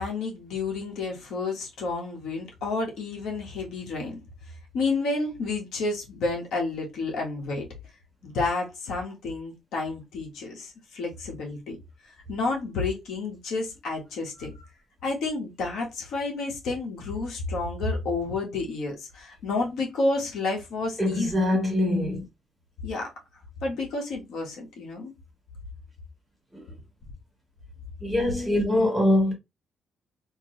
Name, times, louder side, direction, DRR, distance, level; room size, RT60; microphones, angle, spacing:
voice 1, 0.0-4.2 4.7-7.7 8.2-11.8 12.3-14.5 15.0-21.3 22.8-23.1 23.6-25.1, left 3 dB, 70° left, 1.5 m, -30 dB
voice 2, 21.0-22.2 26.5-26.7 28.0-29.3, left 1 dB, 5° right, 1.5 m, -23 dB
3.5 x 2.9 x 3.2 m
cardioid pair, 150°, 0 cm